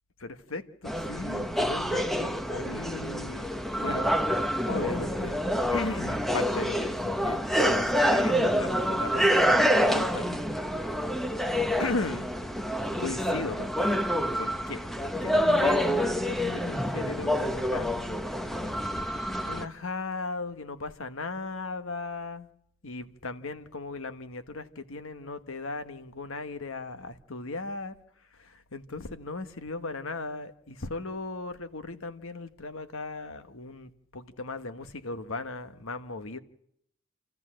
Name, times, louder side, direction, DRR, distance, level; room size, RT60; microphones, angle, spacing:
voice 1, 0.2-4.2 4.7-5.4 5.7-10.3 11.8-12.3 13.0-13.9 14.4-18.7 19.4-22.5 22.8-27.9 28.4-36.4, left 3 dB, 70° left, 1.3 m, -37 dB
sound 1, 0.9-19.7, equal, ahead, 0.8 m, -27 dB
28.5 x 13.5 x 7.6 m
head